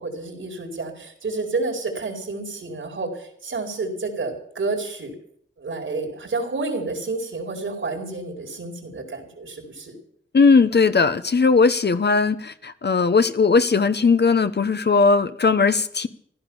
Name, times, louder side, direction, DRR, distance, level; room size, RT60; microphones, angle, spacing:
voice 1, 0.0-5.1 5.6-10.0, right 3 dB, 75° right, 4.4 m, -30 dB
voice 2, 10.3-16.1, left 4 dB, 55° left, 1.0 m, -18 dB
15.5 x 12.0 x 7.2 m
cardioid pair, 45°, 21 cm